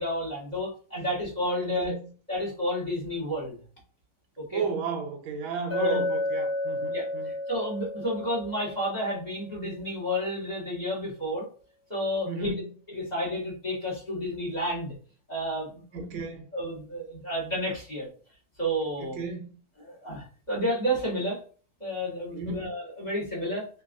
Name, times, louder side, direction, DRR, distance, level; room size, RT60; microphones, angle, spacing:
voice 1, 0.0-1.9 2.3-3.6 4.4-4.6 5.8-6.0 6.9-11.4 11.9-12.5 12.9-14.9 15.3-16.0 16.5-18.1 18.6-19.2 19.8-21.4 21.8-23.7, equal, 20° left, -5 dB, 1.6 m, -31 dB
voice 2, 1.6-2.1 4.5-7.3 12.2-12.7 15.9-16.5 19.0-19.6 22.3-22.7, right 4 dB, 80° right, 4 dB, 1.5 m, -34 dB
Chink clink, 5.7-9.7, left 1 dB, 45° left, 1.8 m, -32 dB
3.9 x 3.0 x 2.5 m, 0.40 s
omnidirectional pair, 2.3 m